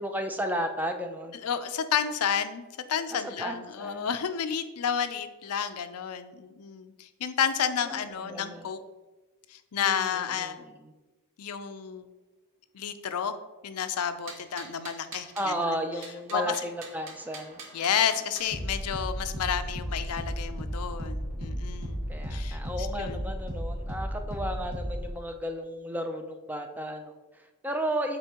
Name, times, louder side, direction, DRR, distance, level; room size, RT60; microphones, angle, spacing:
voice 1, 0.0-1.4 3.4-4.2 7.9-8.7 9.8-10.9 15.4-17.6 22.1-28.2, equal, 10° right, 5 dB, 0.4 m, -34 dB
voice 2, 1.4-2.6 2.9-8.8 9.5-10.6 11.4-12.1 12.7-13.4 13.6-15.8 16.3-16.4 17.7-23.2, left 8 dB, 85° left, 10 dB, 0.5 m, -31 dB
sound 1, 14.3-15.5 16.0-18.5, right 4 dB, 60° right, 0.9 m, -45 dB
sound 2, 16.6-25.1, equal, 45° right, 1.6 m, -35 dB
7.9 x 4.1 x 2.9 m, 1.2 s
head